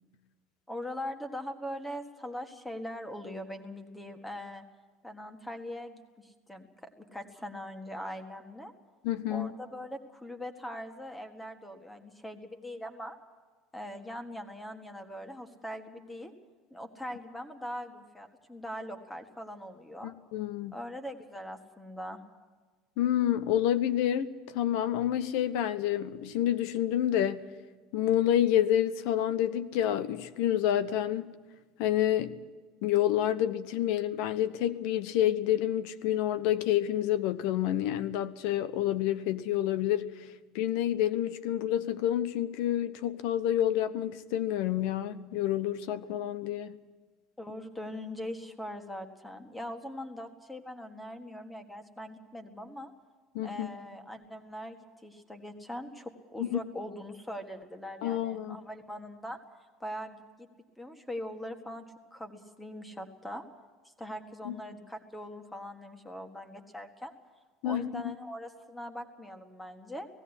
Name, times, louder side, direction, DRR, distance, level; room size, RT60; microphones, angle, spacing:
voice 1, 0.7-4.6 5.0-8.7 9.3-13.2 13.7-16.3 16.7-20.1 20.7-22.2 47.4-52.9 53.4-59.4 59.8-60.5 60.8-61.8 62.1-63.4 64.0-67.1 67.6-70.1, equal, 5° left, 1.7 m, -41 dB
voice 2, 9.0-9.5 20.0-20.7 23.0-27.5 27.9-31.3 31.8-32.3 32.8-40.1 40.5-46.8 53.3-53.7 56.4-56.6 58.0-58.6 64.4-64.5 67.6-68.1, left 11 dB, 70° left, 1.1 m, -28 dB
18.0 x 16.0 x 9.8 m
cardioid pair, 155°, 0 cm